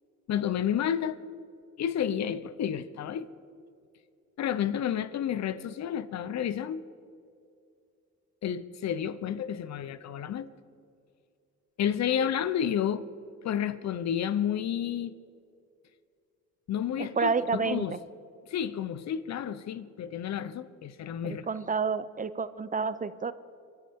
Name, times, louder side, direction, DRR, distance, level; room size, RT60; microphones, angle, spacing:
voice 1, 0.3-1.2 1.8-3.3 4.4-6.8 8.4-10.5 11.8-13.0 13.4-15.1 16.7-18.0 18.5-21.5, left 9 dB, 60° left, 0.8 m, -30 dB
voice 2, 17.0-18.0 21.2-23.3, right 5 dB, 25° right, 0.6 m, -29 dB
23.5 x 13.0 x 3.7 m
cardioid pair, 90°, 30 cm